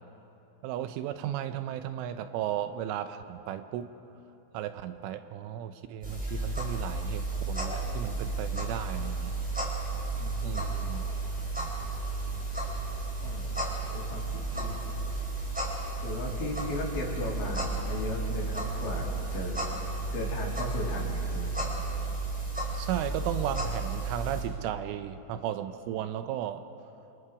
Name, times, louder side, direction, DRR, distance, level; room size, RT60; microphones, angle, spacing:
voice 1, 0.6-3.9 4.5-9.3 10.4-11.0 22.7-26.6, right 11 dB, 80° right, 10 dB, 3.2 m, -35 dB
sound 1, 6.0-24.4, right 3 dB, ahead, 3.4 m, -33 dB
voice 2, 13.9-14.8 16.0-19.8 20.1-21.6, left 2 dB, 60° left, -3 dB, 5.5 m, -36 dB
28.0 x 27.5 x 4.8 m, 2.9 s
omnidirectional pair, 5.8 m